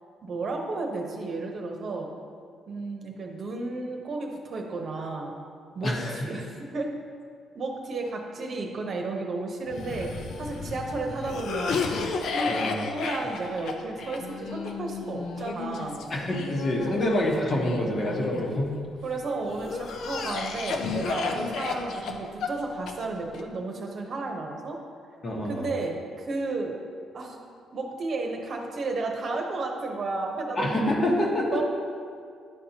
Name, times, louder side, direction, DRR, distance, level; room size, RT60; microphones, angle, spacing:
voice 1, 0.2-2.1 2.7-5.4 5.7-6.4 6.7-6.9 7.5-11.9 12.3-16.0 19.0-24.8 25.4-26.8 27.1-27.4 27.7-30.7 31.5-31.6, right 3 dB, 55° right, 1 dB, 0.9 m, -33 dB
voice 2, 5.8-6.2 12.5-12.8 16.1-18.7 25.2-25.7 30.6-31.6, left 1 dB, 40° left, -2 dB, 1.3 m, -26 dB
Cough, 9.7-18.9 19.5-23.4, left 4 dB, 70° left, 0.5 m, -33 dB
10.5 x 4.3 x 2.9 m, 2.2 s
cardioid pair, 90°, 0 cm